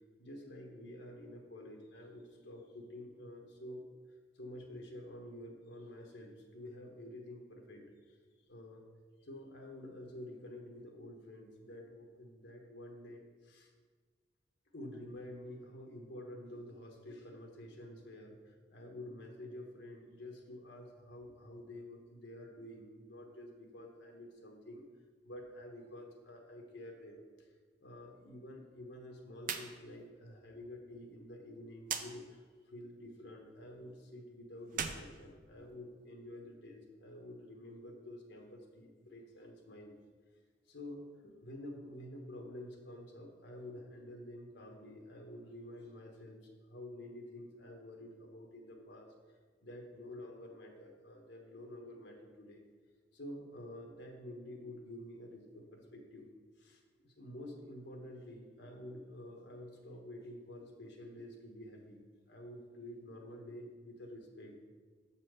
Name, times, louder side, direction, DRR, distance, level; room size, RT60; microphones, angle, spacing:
voice 1, 0.2-3.8 4.3-8.2 8.5-8.8 9.2-13.7 14.7-24.8 25.2-27.5 27.8-39.9 40.7-49.1 49.6-52.6 53.1-56.3 56.6-64.6, left 1 dB, 75° left, 1 dB, 1.1 m, -49 dB
sound 1, 29.4-29.7 30.0-30.1 31.8-32.1 34.6-36.0, right 7 dB, 50° right, 0.5 m, -39 dB
6.3 x 4.2 x 6.4 m, 1.5 s
head